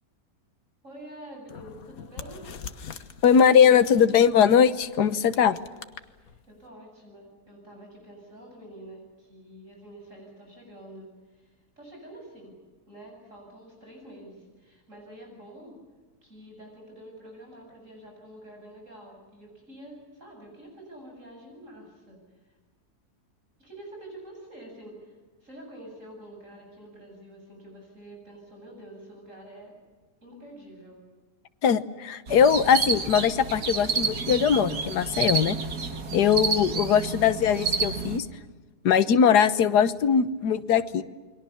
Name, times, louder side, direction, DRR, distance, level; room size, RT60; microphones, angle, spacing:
voice 1, 0.8-2.4 6.1-12.5 12.9-15.7 16.2-22.5 23.6-29.7 30.2-31.0, right 1 dB, 50° right, 0 dB, 8.5 m, -47 dB
sound 1, 1.5-6.7, left 6 dB, 60° left, 1.6 m, -44 dB
voice 2, 3.2-5.6 31.6-35.6 36.1-38.3 38.8-41.0, left 7 dB, 80° left, 12 dB, 1.6 m, -20 dB
sound 2, 32.3-38.2, right 5 dB, 70° right, 2.4 m, -29 dB
29.5 x 23.0 x 7.1 m, 1.4 s
omnidirectional pair, 1.7 m